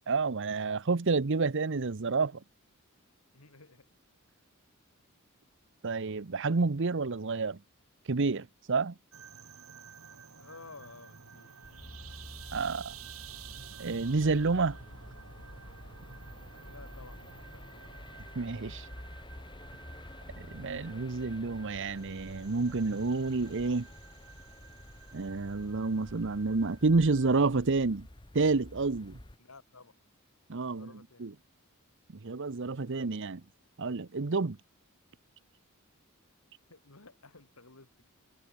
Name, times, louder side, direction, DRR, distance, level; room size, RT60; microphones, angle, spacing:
voice 1, 0.1-2.4 5.8-7.6 8.1-8.9 12.5-12.9 13.8-14.8 18.4-18.9 20.4-23.9 25.1-28.1 28.3-29.2 30.5-30.9 31.2-31.3 32.2-33.4 33.8-34.6, right 3 dB, 60° right, 0.8 m, -29 dB
voice 2, 3.3-3.9 10.4-11.6 16.6-18.0 29.4-29.9 30.7-31.3 36.7-37.9, left 3 dB, 90° left, 2.8 m, -53 dB
sound 1, 9.1-27.3, right 7 dB, 75° right, 1.8 m, -52 dB
sound 2, 11.6-29.4, left 1 dB, 20° left, 1.3 m, -49 dB
head